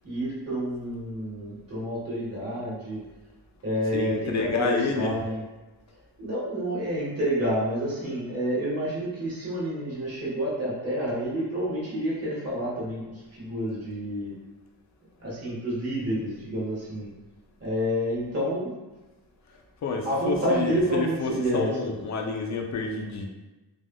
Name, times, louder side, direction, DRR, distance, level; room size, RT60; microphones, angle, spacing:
voice 1, 0.0-3.0 3.6-5.4 6.2-14.3 15.2-17.1 17.6-18.7 20.0-21.9, equal, 35° right, -8 dB, 1.2 m, -29 dB
voice 2, 3.9-5.2 19.8-23.3, left 4 dB, 45° left, 2 dB, 0.4 m, -29 dB
3.4 x 2.4 x 2.2 m, 1.1 s
wide cardioid pair, 140°, 41 cm